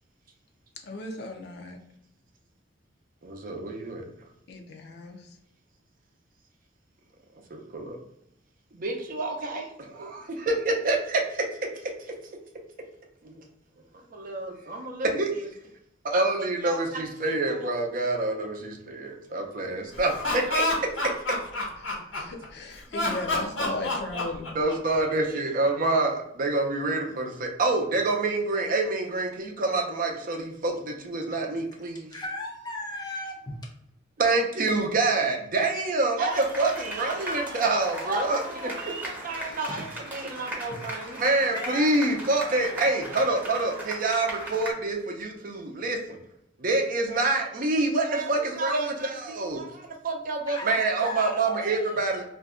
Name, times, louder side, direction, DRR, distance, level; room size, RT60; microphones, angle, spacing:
voice 1, 0.8-1.8 4.5-5.4 21.8-24.6, left 2 dB, 60° left, 0.5 m, -37 dB
voice 2, 3.2-4.0 7.5-8.0 8.7-11.4 13.2-13.4 14.1-15.5 16.0-20.7 21.0-21.1 24.5-32.1 34.2-46.2 46.6-52.2, right 2 dB, 45° right, 0.5 m, -27 dB
Laughter, 19.9-22.4 22.9-25.0, left 2 dB, 85° left, 1.3 m, -28 dB
voice 3, 32.1-33.6 39.7-40.0 40.6-40.9 41.5-41.9 50.5-52.0, left 1 dB, 20° left, 0.7 m, -37 dB
sound 1, 36.3-44.7, right 1 dB, 10° right, 0.8 m, -38 dB
2.6 x 2.2 x 3.6 m
head